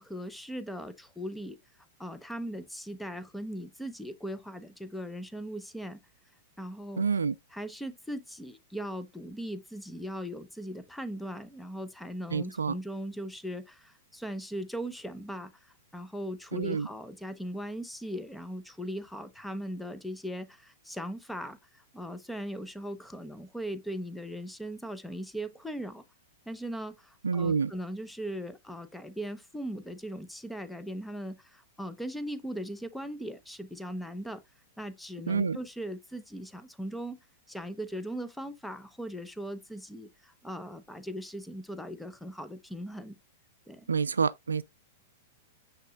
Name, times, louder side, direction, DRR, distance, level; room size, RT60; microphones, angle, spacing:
voice 1, 0.0-1.6 2.0-6.0 6.6-7.0 7.5-26.0 26.5-34.4 34.8-37.2 37.5-43.2 43.7-43.9, equal, 5° left, 0.9 m, -39 dB
voice 2, 7.0-7.4 12.3-12.7 16.5-16.9 27.2-27.7 35.3-35.6 43.9-44.6, right 5 dB, 85° right, 0.4 m, -28 dB
6.5 x 6.2 x 2.4 m
hypercardioid pair, 110°, 0 cm